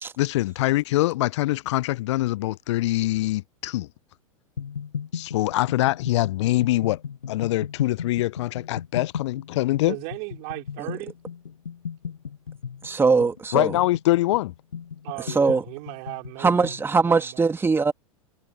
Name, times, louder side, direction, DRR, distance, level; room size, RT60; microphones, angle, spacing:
voice 1, 0.2-3.9 5.1-7.0 7.3-10.0 13.5-14.5, left 17 dB, 55° left, 0.7 m, -24 dB
sound 1, 4.6-16.8, left 7 dB, 80° left, 1.2 m, -36 dB
voice 2, 9.9-11.2 15.0-16.8 17.0-17.5, right 40 dB or more, 50° right, 4.3 m, -36 dB
voice 3, 12.8-13.7 15.3-15.6 16.4-17.9, right 4 dB, 15° right, 2.2 m, -21 dB
figure-of-eight pair, 95°, 18 cm